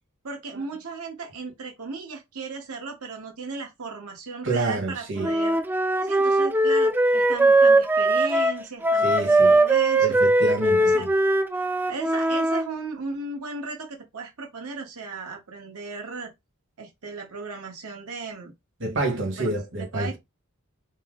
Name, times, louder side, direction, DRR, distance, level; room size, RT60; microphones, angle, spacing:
voice 1, 0.2-5.6 6.0-10.2 10.6-11.1 11.9-16.3 16.8-18.5 19.4-20.2, right 4 dB, 80° right, 1.1 m, -36 dB
voice 2, 4.4-5.3 9.0-9.6 10.0-11.1 18.8-20.2, right 2 dB, 55° right, 1.3 m, -28 dB
Wind instrument woodwind instrument, 5.2-12.7, right 2 dB, 10° right, 0.3 m, -20 dB
5.4 x 2.0 x 3.6 m
head